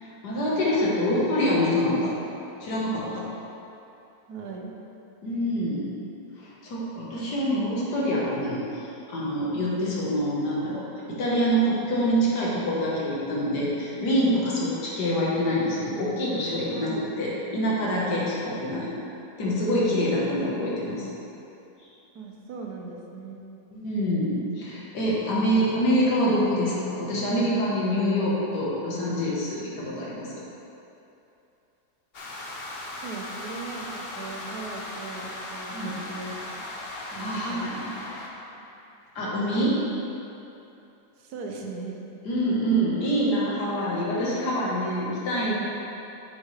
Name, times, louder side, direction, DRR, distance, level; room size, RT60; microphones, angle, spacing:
voice 1, 0.0-2.1 2.6-3.3 5.2-6.0 6.4-18.9 19.4-21.1 23.7-30.3 35.7-35.9 37.2-37.9 39.2-39.8 42.3-45.5, equal, 90° left, -6 dB, 2.0 m, -26 dB
voice 2, 4.3-4.8 16.7-17.2 22.1-23.4 32.9-36.5 37.1-37.6 41.2-42.0, right 4 dB, 75° right, 1 dB, 1.4 m, -39 dB
sound 1, 32.1-38.3, left 2 dB, 45° left, 0.9 m, -37 dB
8.2 x 7.0 x 3.3 m, 2.8 s
omnidirectional pair, 1.7 m